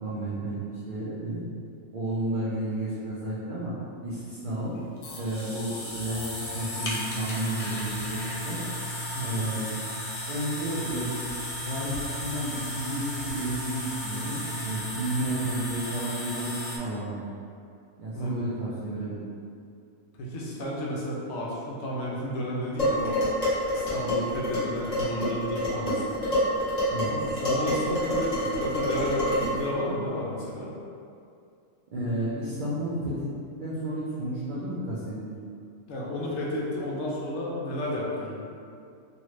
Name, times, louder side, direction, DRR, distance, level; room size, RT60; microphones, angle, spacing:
voice 1, 0.0-0.5 0.9-1.5 1.9-3.8 4.0-4.8 5.1-8.6 9.2-9.7 10.3-11.1 11.6-17.2 18.0-19.3 26.9-27.1 31.9-33.3 33.6-35.3, right 1 dB, 60° right, -9 dB, 0.5 m, -32 dB
sound 1, 4.4-16.8, left 1 dB, 85° left, 1.0 m, -35 dB
sound 2, 5.3-14.8, right 2 dB, 80° right, 1.0 m, -47 dB
voice 2, 18.1-18.4 20.2-23.2 23.7-26.1 27.1-30.7 35.9-38.5, left 1 dB, 65° left, -5 dB, 0.8 m, -32 dB
Dishes pots and pans, 22.8-29.7, equal, 30° left, 1.1 m, -27 dB
2.8 x 2.4 x 3.1 m, 2.4 s
omnidirectional pair, 1.4 m